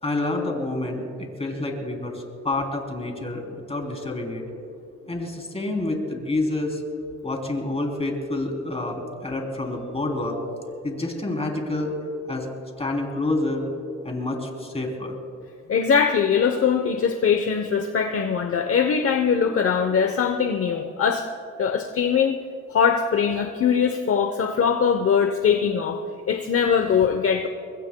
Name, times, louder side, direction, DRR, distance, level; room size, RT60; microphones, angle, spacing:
voice 1, 0.0-4.4 5.1-6.8 7.2-10.4 10.8-11.9 12.3-12.5 12.8-13.6 14.0-15.2, left 2 dB, 20° left, 1 dB, 3.3 m, -28 dB
voice 2, 15.7-21.2 21.6-22.4 22.7-26.0 26.3-27.5, left 6 dB, 50° left, 5 dB, 0.9 m, -21 dB
24.5 x 21.5 x 2.3 m, 2.5 s
cardioid pair, 90°, 30 cm